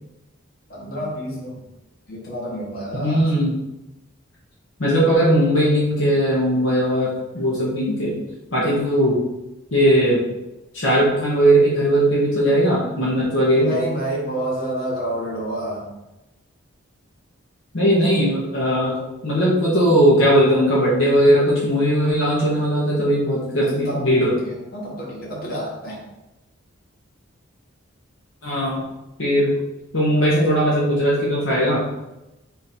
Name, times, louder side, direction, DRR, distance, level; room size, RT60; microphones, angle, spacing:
voice 1, 0.7-1.7 2.1-3.3 13.5-15.9 23.6-26.0, right 1 dB, 45° left, -5 dB, 1.3 m, -29 dB
voice 2, 2.9-3.6 4.8-8.1 8.5-9.2 9.7-10.2 10.7-13.8 17.7-19.0 19.2-24.3 28.4-28.8 29.2-29.5 29.9-31.8, equal, 70° left, -6 dB, 1.0 m, -18 dB
3.9 x 2.6 x 4.3 m, 0.98 s
head